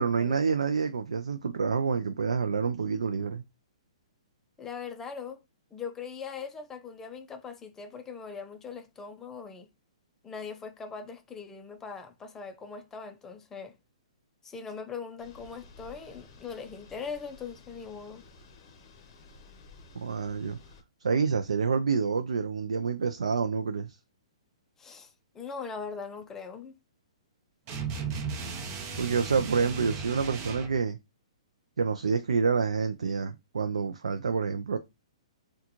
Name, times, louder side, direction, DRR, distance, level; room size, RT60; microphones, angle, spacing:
voice 1, 0.0-3.4 20.0-20.6 21.0-24.0 27.9-28.4 29.0-31.0 31.8-34.8, right 5 dB, 90° right, 0.4 m, -28 dB
voice 2, 4.6-5.4 5.7-9.7 10.2-13.8 14.4-18.2 24.8-26.8, left 5 dB, 15° left, 0.5 m, -40 dB
sound 1, 15.2-20.8, left 3 dB, 45° left, 0.8 m, -53 dB
sound 2, 27.7-30.8, right 5 dB, 30° right, 0.8 m, -36 dB
3.6 x 2.3 x 2.9 m
hypercardioid pair, 140°, 3 cm